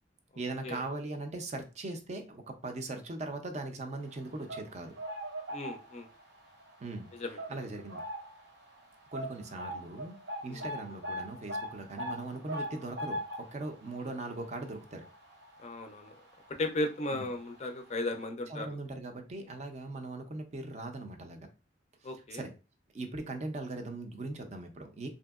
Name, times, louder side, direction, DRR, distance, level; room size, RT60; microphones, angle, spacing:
voice 1, 0.4-4.9 6.8-7.1 7.5-8.0 9.1-10.2 10.4-15.1 17.1-17.3 18.5-21.5 22.1-22.5 22.9-25.1, right 2 dB, 40° right, 5 dB, 0.5 m, -40 dB
sound 1, 4.2-6.2 6.6-6.8 7.4-8.5 8.7-8.8 9.1-16.2 16.5-16.6 17.5-17.6 17.9-18.0, equal, 85° right, 0.9 m, -40 dB
voice 2, 5.5-6.1 7.1-7.6 10.5-10.7 15.6-16.2 16.5-18.8 22.0-22.4, left 2 dB, 35° left, 6 dB, 0.4 m, -36 dB
2.8 x 2.6 x 2.3 m, 0.32 s
head